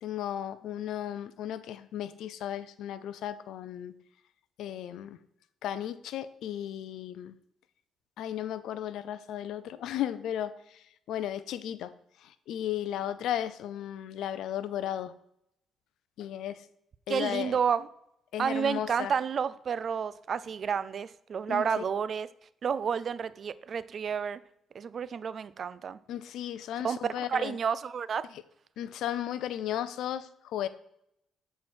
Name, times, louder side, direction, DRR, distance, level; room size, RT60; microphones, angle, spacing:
voice 1, 0.0-4.0 4.6-5.2 5.6-7.3 8.2-11.9 12.2-15.1 16.2-16.7 17.1-17.6 18.3-19.1 21.5-21.8 26.1-27.6 28.3-28.4 28.8-30.7, left 11 dB, 80° left, 14 dB, 0.5 m, -35 dB
voice 2, 17.1-17.8 18.4-22.3 22.6-24.4 24.7-26.0 26.8-28.3, right 7 dB, 50° right, 16 dB, 0.4 m, -30 dB
7.5 x 4.6 x 4.3 m, 0.75 s
cardioid pair, 90°, 0 cm